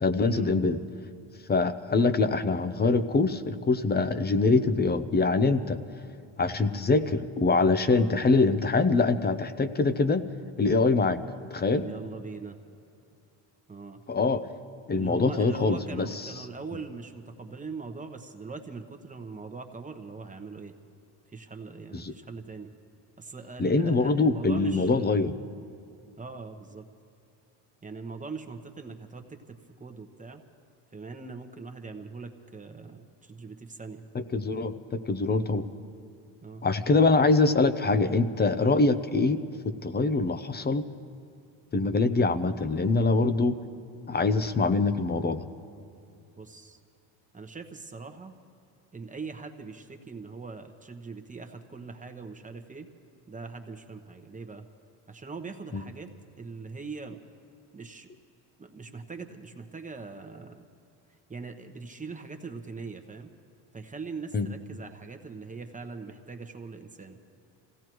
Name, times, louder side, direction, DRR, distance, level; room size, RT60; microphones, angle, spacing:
voice 1, 0.0-0.8 1.5-5.8 6.4-10.2 10.6-11.2 11.5-11.9 14.1-14.4 14.9-16.3 21.9-22.1 23.6-25.3 34.1-35.6 36.6-40.8 41.7-43.5 44.1-45.5 55.7-55.8 64.3-64.5, left 3 dB, 20° left, 11 dB, 0.7 m, -24 dB
voice 2, 11.8-12.6 13.7-14.0 14.9-20.7 21.3-22.7 23.2-25.3 26.2-26.9 27.8-30.4 30.9-34.0 36.4-36.6 46.3-46.8 47.3-48.4 48.9-52.9 53.3-54.6 55.1-57.2 57.7-58.1 58.6-60.6 61.3-63.3 63.7-67.2, right 4 dB, 15° right, 5 dB, 1.1 m, -41 dB
26.5 x 16.5 x 3.1 m, 2.5 s
supercardioid pair, 95°, 44 cm